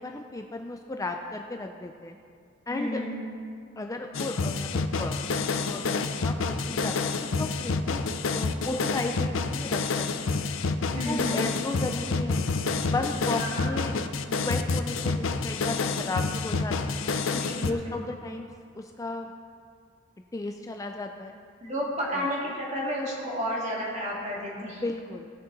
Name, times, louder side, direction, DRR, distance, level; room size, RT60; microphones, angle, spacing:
voice 1, 0.0-2.2 2.7-3.0 3.8-5.2 5.6-8.0 8.3-10.3 11.0-12.4 12.8-13.9 14.4-17.1 17.6-18.5 18.8-19.3 20.3-21.4 22.1-22.3 24.6-25.3, left 2 dB, 15° left, 4 dB, 0.4 m, -35 dB
voice 2, 2.7-3.1 10.9-11.4 13.4-13.7 17.3-18.0 21.6-24.8, equal, 35° right, -4 dB, 2.4 m, -32 dB
sound 1, 4.1-17.7, left 4 dB, 80° left, 0.6 m, -28 dB
17.0 x 6.6 x 4.0 m, 2.3 s
head